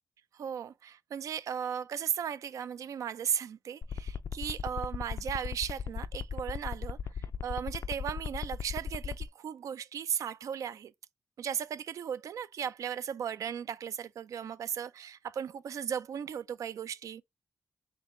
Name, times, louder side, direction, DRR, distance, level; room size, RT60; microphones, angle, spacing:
voice 1, 0.3-7.0 7.4-10.9 11.4-17.2, right 8 dB, 75° right, 0.4 m, -36 dB
sound 1, 3.8-9.3, left 7 dB, 60° left, 0.3 m, -36 dB
4.0 x 3.2 x 3.0 m
cardioid pair, 65°, 6 cm